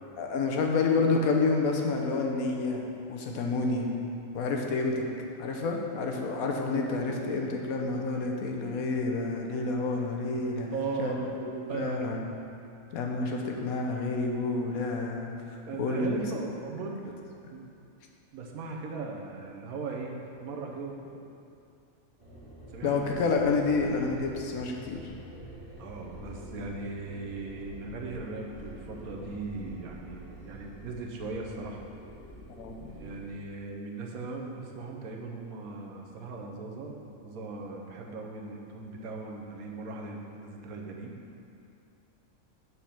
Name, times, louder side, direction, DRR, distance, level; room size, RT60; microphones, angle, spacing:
voice 1, 0.2-3.9 4.3-5.1 5.4-10.7 11.0-11.2 11.7-12.4 12.9-15.3 15.8-16.2 22.8-25.1 32.6-33.0, left 3 dB, 80° left, 1 dB, 1.3 m, -29 dB
voice 2, 10.7-11.3 11.7-12.0 15.7-17.0 17.5-17.7 18.3-21.3 22.7-23.2 25.8-31.8 32.9-41.2, right 3 dB, 80° right, 1 dB, 1.3 m, -38 dB
sound 1, 22.2-33.3, equal, 25° right, 1.4 m, -47 dB
7.0 x 4.7 x 5.8 m, 2.6 s
omnidirectional pair, 1.5 m